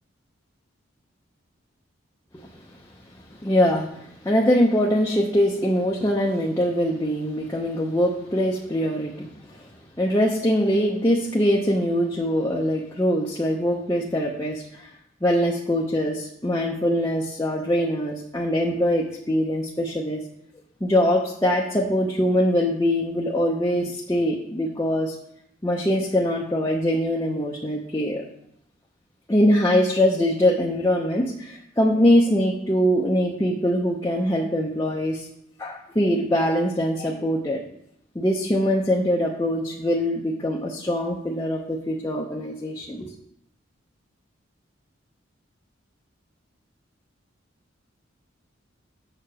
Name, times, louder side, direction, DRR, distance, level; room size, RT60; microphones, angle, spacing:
voice 1, 3.4-9.7 10.0-14.9 15.2-20.2 20.8-25.1 25.6-28.2 29.3-35.3 35.6-37.6 38.1-43.1, equal, 15° left, -3 dB, 0.6 m, -23 dB
7.8 x 4.6 x 6.2 m, 0.75 s
head